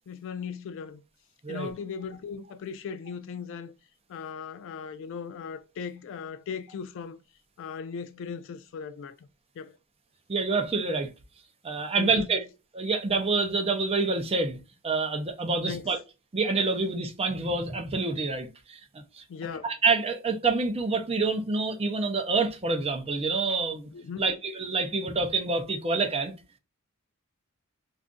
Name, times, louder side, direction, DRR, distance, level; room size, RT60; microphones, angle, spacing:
voice 1, 0.1-1.0 1.5-3.7 4.1-7.2 7.6-9.2 9.6-9.8 12.0-12.3 15.7-16.0 19.3-19.7 23.9-24.2, left 6 dB, 60° left, 0.3 m, -38 dB
voice 2, 10.3-11.1 11.6-12.4 12.7-14.6 14.8-16.0 16.3-19.2 19.6-23.9 24.2-26.3, right 3 dB, 25° right, 0.5 m, -27 dB
2.5 x 2.4 x 3.6 m
head